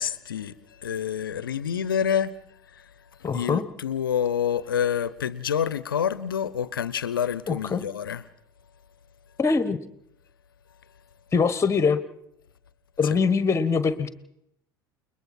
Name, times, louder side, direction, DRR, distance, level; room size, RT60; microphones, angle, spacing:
voice 1, 0.0-2.4 2.7-2.9 3.2-8.2, left 8 dB, 80° left, 0.7 m, -28 dB
voice 2, 3.2-3.7 7.5-7.8 9.4-9.8 11.3-12.0 13.0-14.1, left 5 dB, 25° left, 1.3 m, -23 dB
29.5 x 21.0 x 4.4 m
figure-of-eight pair, 65°, 11 cm